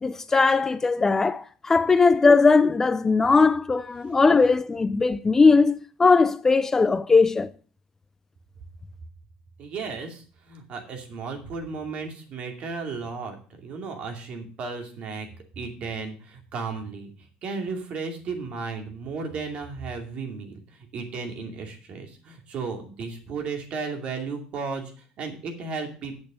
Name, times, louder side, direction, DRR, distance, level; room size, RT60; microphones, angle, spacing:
voice 1, 0.0-7.5, left 4 dB, 20° left, 0.4 m, -19 dB
voice 2, 9.6-15.3 15.6-17.1 17.4-26.2, right 4 dB, 50° right, 2.6 m, -34 dB
8.2 x 6.7 x 6.6 m
cardioid pair, 115°, 3 cm